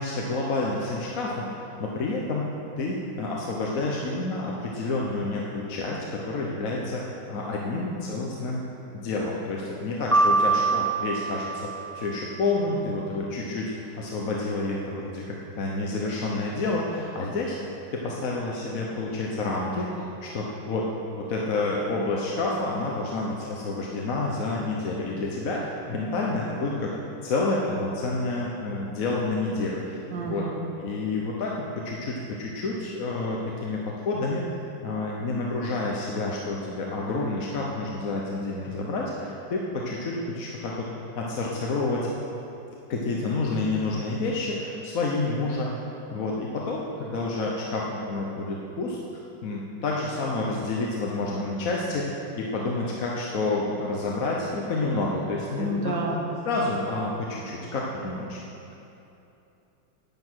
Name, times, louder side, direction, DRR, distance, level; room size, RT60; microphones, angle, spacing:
voice 1, 0.0-1.5 1.8-2.5 2.8-7.0 7.3-8.6 8.9-17.6 17.9-27.0 27.2-30.0 30.3-30.4 30.8-34.4 34.8-40.9 41.2-42.1 42.9-45.8 46.1-49.0 49.4-55.9 56.4-58.4, left 2 dB, 50° left, -2 dB, 1.2 m, -29 dB
Piano, 10.1-12.3, right 3 dB, 5° left, 0.4 m, -24 dB
voice 2, 30.1-30.6 55.6-56.3, right 2 dB, 65° right, -2 dB, 2.3 m, -29 dB
10.5 x 9.6 x 6.3 m, 2.8 s
omnidirectional pair, 2.1 m